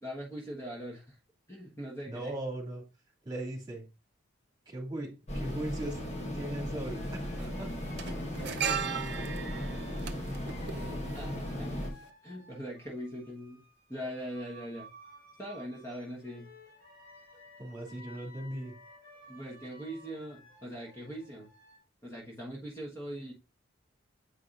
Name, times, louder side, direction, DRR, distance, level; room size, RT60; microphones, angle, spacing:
voice 1, 0.0-1.2 1.5-2.3 11.1-12.0 12.2-13.6 13.9-14.9 15.4-16.5 19.3-21.5 22.0-23.3, equal, 15° left, -3 dB, 1.3 m, -41 dB
voice 2, 2.1-2.8 3.2-3.8 4.7-6.0 6.3-7.7 9.5-9.8 17.6-18.7, right 1 dB, 20° right, -1 dB, 2.2 m, -38 dB
sound 1, 5.3-11.9, left 1 dB, 35° left, 1.2 m, -37 dB
sound 2, 5.5-5.6 6.8-7.1 7.3-11.6 11.9-12.1, right 7 dB, 55° right, 0.6 m, -37 dB
sound 3, 6.9-9.7 10.2-21.8, left 1 dB, 65° left, 3.4 m, -56 dB
8.3 x 4.8 x 2.5 m, 0.28 s
head